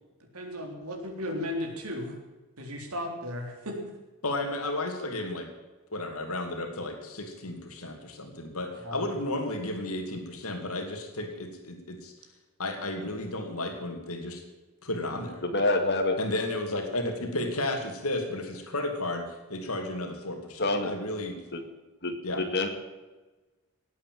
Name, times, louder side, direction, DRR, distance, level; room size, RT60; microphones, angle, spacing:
voice 1, 0.3-2.1 2.6-3.8 8.8-9.0, left 1 dB, 85° right, 2 dB, 3.7 m, -35 dB
voice 2, 4.2-5.5 5.9-12.1 12.6-14.4 14.8-15.4 16.2-21.3 22.2-22.4, left 1 dB, 80° left, 3 dB, 2.6 m, -33 dB
voice 3, 15.4-16.2 20.6-20.9 21.5-21.6 22.0-22.7, left 2 dB, 50° left, 4 dB, 2.2 m, -26 dB
18.5 x 8.6 x 7.6 m, 1.2 s
head